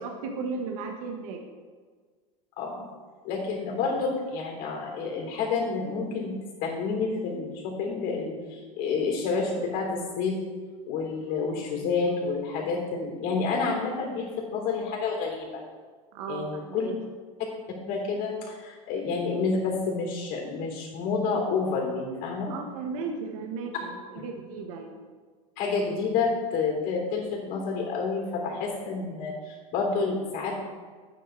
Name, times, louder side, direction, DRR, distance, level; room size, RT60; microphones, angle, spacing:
voice 1, 0.0-1.5 8.6-8.7 11.8-11.9 16.1-16.9 22.5-25.1, right 4 dB, 75° right, 2 dB, 1.4 m, -36 dB
voice 2, 3.2-6.3 6.6-10.4 10.9-15.6 16.3-16.9 17.9-22.5 25.6-30.6, left 4 dB, 55° left, 0 dB, 3.5 m, -29 dB
10.5 x 9.1 x 4.6 m, 1.5 s
supercardioid pair, 130°, 18 cm